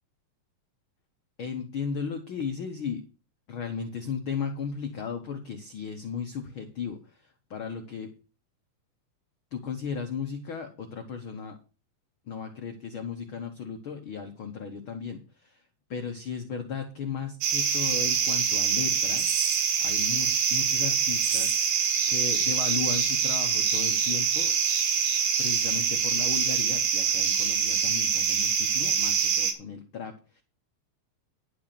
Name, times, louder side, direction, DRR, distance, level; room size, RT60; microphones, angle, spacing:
voice 1, 1.4-3.0 3.5-8.1 9.5-11.6 12.3-15.6 15.9-21.6 22.1-24.5 25.4-30.4, left 6 dB, 70° left, 4 dB, 1.2 m, -35 dB
sound 1, 17.4-29.5, right 7 dB, 75° right, 3.1 m, -25 dB
11.5 x 5.9 x 6.7 m, 0.35 s
omnidirectional pair, 4.1 m